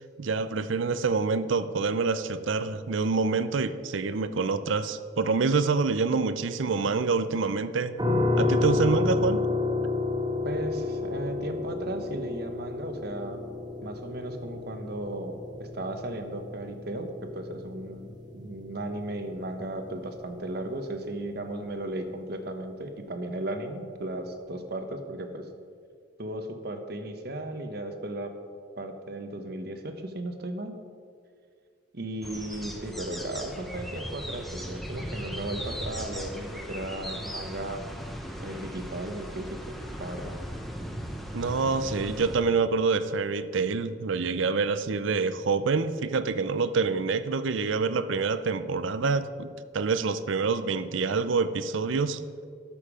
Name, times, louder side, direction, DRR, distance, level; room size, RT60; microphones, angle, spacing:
voice 1, 0.2-7.9 8.4-9.4 41.3-52.2, right 4 dB, 75° right, 13 dB, 0.5 m, -26 dB
sound 1, 8.0-20.8, left 3 dB, 20° right, 1.3 m, -31 dB
voice 2, 10.4-13.4 13.8-25.5 26.2-28.3 28.8-30.8 31.9-37.8 38.4-40.4, right 1 dB, 50° right, 7 dB, 1.0 m, -36 dB
sound 2, 32.2-42.4, equal, ahead, 0.9 m, -38 dB
12.5 x 6.7 x 5.0 m, 2.2 s
head